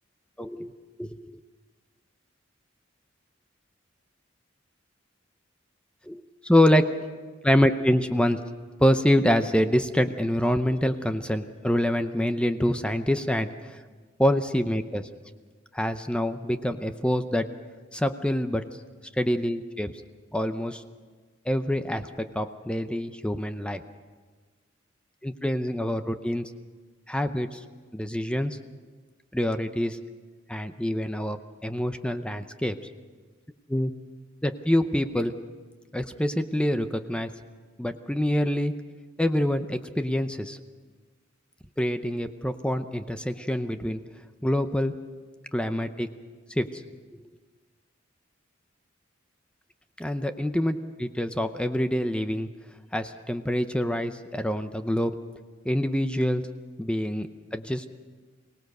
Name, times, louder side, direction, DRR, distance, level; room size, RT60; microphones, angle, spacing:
voice 1, 0.4-0.7 1.0-1.4 6.1-6.9 7.4-8.4 8.8-13.8 14.2-15.1 15.7-17.5 17.9-18.6 19.2-20.0 20.3-20.8 21.5-23.8 25.2-26.5 27.1-27.6 27.9-28.6 29.3-30.0 30.5-32.8 33.7-33.9 34.4-35.3 35.9-37.3 37.8-38.7 39.2-40.6 41.8-44.0 44.4-44.9 45.5-46.1 46.6-46.8 50.0-52.5 52.9-55.1 55.6-56.4 56.8-57.9, equal, 5° left, 9 dB, 0.7 m, -26 dB
24.0 x 18.0 x 6.6 m, 1.4 s
head